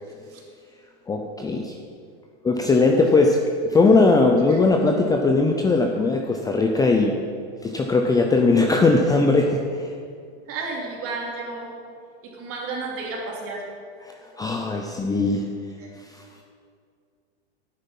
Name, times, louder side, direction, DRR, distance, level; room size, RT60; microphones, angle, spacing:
voice 1, 1.1-1.8 2.4-7.2 7.6-9.9 14.0-15.5 16.1-16.2, left 3 dB, 10° left, 2 dB, 0.6 m, -19 dB
voice 2, 10.5-11.7 12.2-13.7 15.8-15.9, right 3 dB, 40° right, -1 dB, 3.0 m, -32 dB
11.5 x 9.3 x 5.5 m, 2.3 s
supercardioid pair, 130°, 34 cm